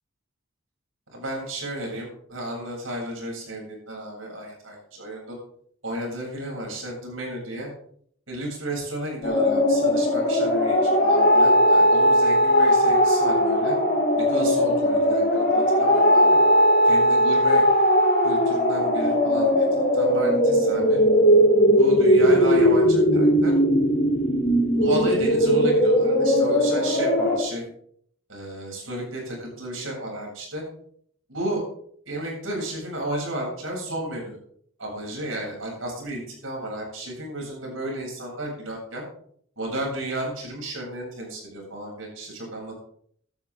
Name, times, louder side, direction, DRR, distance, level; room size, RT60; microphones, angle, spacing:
voice 1, 1.1-5.4 5.8-7.7 8.3-13.8 14.2-16.2 16.8-17.6 18.2-21.0 21.7-23.5 24.7-27.6 28.3-30.6 31.3-31.6 32.1-34.4 34.8-39.0 39.6-42.9, right 1 dB, 90° right, -2 dB, 7.7 m, -33 dB
sound 1, 9.2-27.4, equal, 50° left, 4.5 m, -19 dB
16.5 x 13.0 x 3.8 m, 0.64 s
head